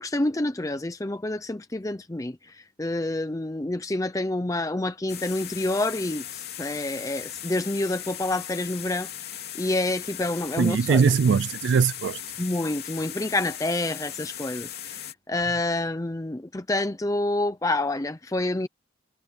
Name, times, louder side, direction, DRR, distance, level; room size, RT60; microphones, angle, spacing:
voice 1, 0.0-9.1 9.6-11.0 12.4-18.7, left 2 dB, 20° left, 0.6 m, -28 dB
sound 1, 5.1-15.1, left 11 dB, 55° left, 3.3 m, -38 dB
voice 2, 10.6-12.2, right 6 dB, 80° right, 0.4 m, -21 dB
head